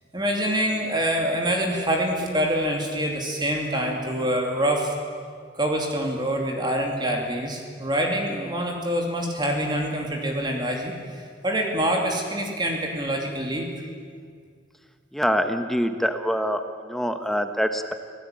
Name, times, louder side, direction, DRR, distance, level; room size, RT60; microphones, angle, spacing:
voice 1, 0.1-4.9 5.5-13.7, equal, 25° right, 1 dB, 2.6 m, -25 dB
voice 2, 15.1-17.9, equal, ahead, 7 dB, 1.0 m, -25 dB
26.0 x 17.5 x 9.1 m, 2.1 s
head